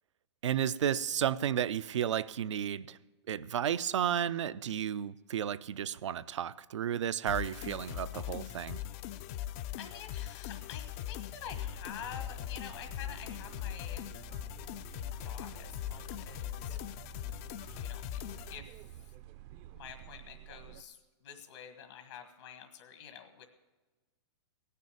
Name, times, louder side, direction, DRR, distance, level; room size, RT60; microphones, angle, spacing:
voice 1, 0.4-3.0 3.3-8.8, right 9 dB, 85° right, 0.5 m, -32 dB
sound 1, 7.3-18.6, left 12 dB, 35° left, 0.4 m, -40 dB
voice 2, 9.7-14.1 15.2-16.8 17.8-18.0 18.5-19.1 19.7-23.4, left 8 dB, 70° left, 1.5 m, -48 dB
sound 2, 11.4-20.8, right 13 dB, 30° right, 0.4 m, -51 dB
16.5 x 6.7 x 8.6 m
hypercardioid pair, 145°, 15 cm